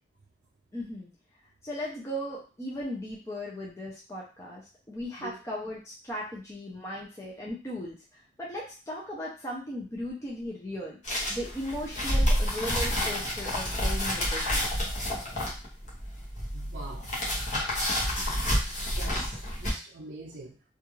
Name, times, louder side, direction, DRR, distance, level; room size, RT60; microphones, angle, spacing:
voice 1, 0.7-1.1 1.6-4.6 4.9-11.0 11.3-14.7, equal, 15° left, -5 dB, 0.5 m, -37 dB
sound 1, 11.0-19.7, equal, 40° left, 0.9 m, -29 dB
voice 2, 16.5-17.1 18.9-20.6, right 2 dB, 65° right, -3 dB, 0.5 m, -43 dB
2.4 x 2.3 x 3.0 m, 0.35 s
head